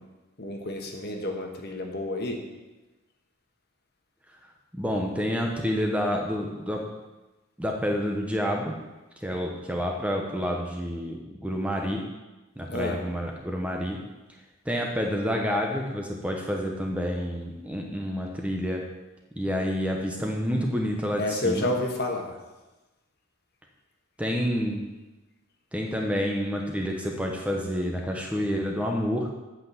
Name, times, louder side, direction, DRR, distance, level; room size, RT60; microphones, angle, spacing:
voice 1, 0.4-2.4 12.7-13.0 21.2-22.4, left 1 dB, 45° left, 3 dB, 1.3 m, -30 dB
voice 2, 4.7-6.9 7.6-8.8 9.2-12.0 12.6-14.0 14.6-18.9 19.3-21.7 24.2-24.9 25.7-29.3, equal, 5° right, 1 dB, 0.8 m, -28 dB
8.2 x 5.9 x 7.1 m, 1.1 s
head